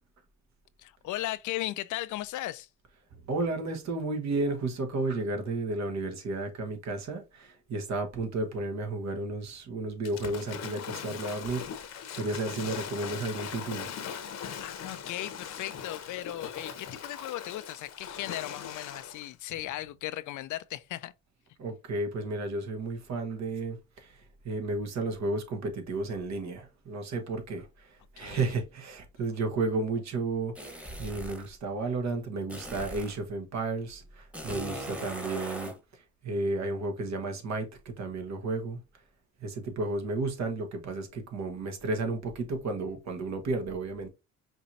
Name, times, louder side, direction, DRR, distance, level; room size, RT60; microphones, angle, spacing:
voice 1, 0.8-2.7 14.6-21.1 28.2-28.5, left 15 dB, 75° left, 0.5 m, -37 dB
voice 2, 3.3-11.7 12.1-13.9 21.6-35.8 36.2-38.8 39.4-44.1, right 3 dB, 65° right, 1.5 m, -33 dB
Waves surf / Splash splatter, 10.0-19.3, left 7 dB, 60° left, 0.9 m, -40 dB
sound 1, 30.6-31.5 32.5-33.2 34.3-35.8, equal, 5° right, 1.2 m, -39 dB
5.3 x 3.0 x 2.7 m
cardioid pair, 90°, 30 cm